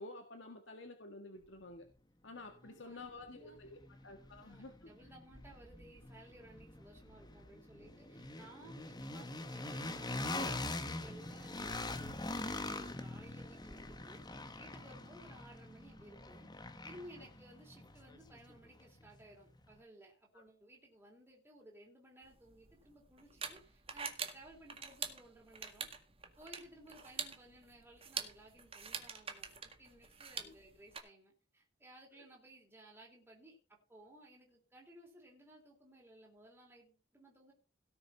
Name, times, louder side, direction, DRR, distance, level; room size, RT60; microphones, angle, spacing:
voice 1, 0.0-1.9 2.2-4.9 20.3-20.4 30.5-30.6, left 2 dB, 90° left, 4 dB, 1.9 m, -51 dB
voice 2, 2.6-3.6 4.4-14.2 14.6-16.5 16.8-25.9 26.4-33.6 33.9-37.5, right 1 dB, 10° right, -3 dB, 3.2 m, -58 dB
sound 1, 2.7-2.8 3.2-19.2, left 2 dB, 20° left, 1.3 m, -44 dB
sound 2, 22.3-31.0, right 6 dB, 30° right, 1.9 m, -45 dB
17.5 x 6.6 x 5.6 m, 0.36 s
head